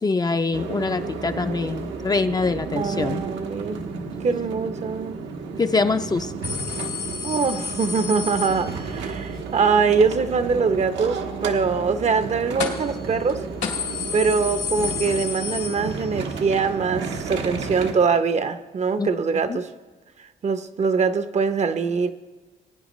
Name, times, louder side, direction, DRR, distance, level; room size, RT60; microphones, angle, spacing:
voice 1, 0.0-3.2 5.6-6.3 19.0-19.6, left 3 dB, 20° left, 0.4 m, -24 dB
sound 1, 0.5-17.9, right 5 dB, 85° right, 1.2 m, -32 dB
voice 2, 2.7-3.8 4.2-5.2 7.2-13.4 14.1-19.7 20.4-22.1, right 5 dB, 40° right, 0.6 m, -23 dB
sound 2, 6.4-9.1 12.6-13.0 13.3-13.4 13.6-16.3 16.7-16.8 17.8-17.9, left 6 dB, 85° left, 2.0 m, -31 dB
21.0 x 9.4 x 3.1 m
cardioid pair, 110°, 18 cm